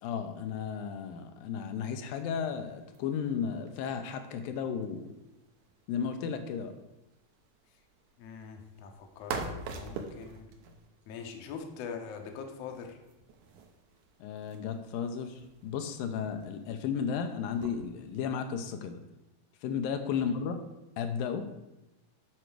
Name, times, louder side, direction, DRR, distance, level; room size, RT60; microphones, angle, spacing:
voice 1, 0.0-5.1 5.9-6.7 14.2-19.0 19.6-20.6 21.0-21.4, left 7 dB, 85° left, 7 dB, 2.3 m, -34 dB
sound 1, 1.9-18.2, right 4 dB, 70° right, 2.0 m, -47 dB
voice 2, 8.2-10.5 11.1-13.0, left 6 dB, 70° left, 4 dB, 1.6 m, -43 dB
9.1 x 4.6 x 6.3 m, 0.95 s
omnidirectional pair, 4.2 m